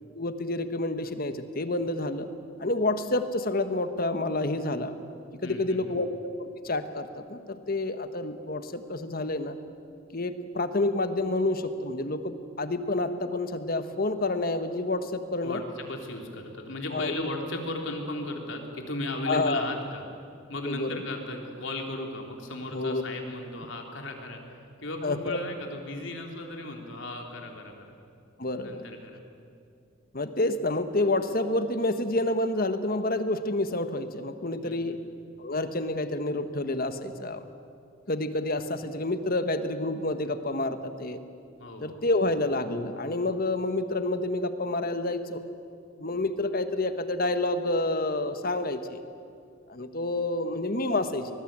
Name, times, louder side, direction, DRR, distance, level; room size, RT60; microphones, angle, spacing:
voice 1, 0.1-2.3 2.6-4.9 5.4-6.1 6.4-9.5 10.1-15.6 16.9-17.3 19.3-19.7 20.6-21.0 22.7-23.0 25.0-25.4 28.4-28.8 30.1-35.0 35.4-37.4 38.1-41.2 41.8-45.4 46.0-49.0 49.7-51.3, left 2 dB, 45° left, 10 dB, 1.4 m, -29 dB
voice 2, 5.4-5.8 15.4-20.0 20.5-27.9 28.6-29.2 34.6-35.0 41.6-42.0, left 1 dB, 65° left, 3 dB, 3.4 m, -36 dB
24.0 x 20.5 x 8.9 m, 2.5 s
head